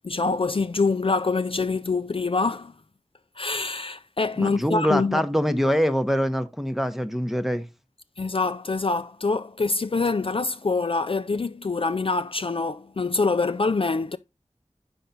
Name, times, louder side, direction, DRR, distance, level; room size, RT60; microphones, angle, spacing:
voice 1, 0.0-2.7 3.4-5.2 8.2-14.2, left 3 dB, 50° left, 0.4 m, -25 dB
voice 2, 4.4-7.7, equal, ahead, 0.8 m, -24 dB
7.8 x 5.7 x 4.0 m
wide cardioid pair, 50°, 12 cm